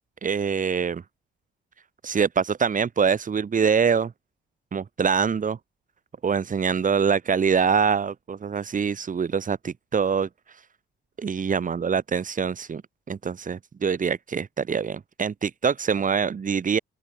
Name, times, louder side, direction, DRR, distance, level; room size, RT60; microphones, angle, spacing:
voice 1, 0.2-1.0 2.0-4.1 4.7-5.6 6.2-10.6 11.2-12.8 13.1-16.8, right 6 dB, 40° right, 3.3 m, -24 dB
open air
cardioid pair, 90°, 20 cm